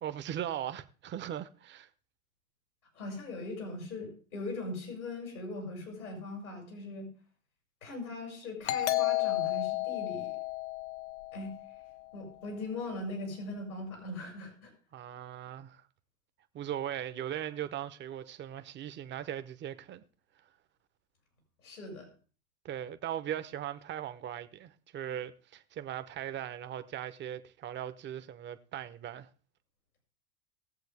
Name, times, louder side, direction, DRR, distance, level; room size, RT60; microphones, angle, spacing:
voice 1, 0.0-1.9 14.9-15.8 16.5-20.0 22.6-29.3, right 10 dB, 25° right, 0.9 m, -39 dB
voice 2, 2.9-7.1 7.8-10.3 11.3-11.5 12.1-14.7 21.6-22.1, left 2 dB, 85° left, 5.9 m, -40 dB
Doorbell, 8.7-12.0, left 16 dB, 55° left, 0.9 m, -32 dB
19.0 x 7.8 x 3.5 m
hypercardioid pair, 85°, 42 cm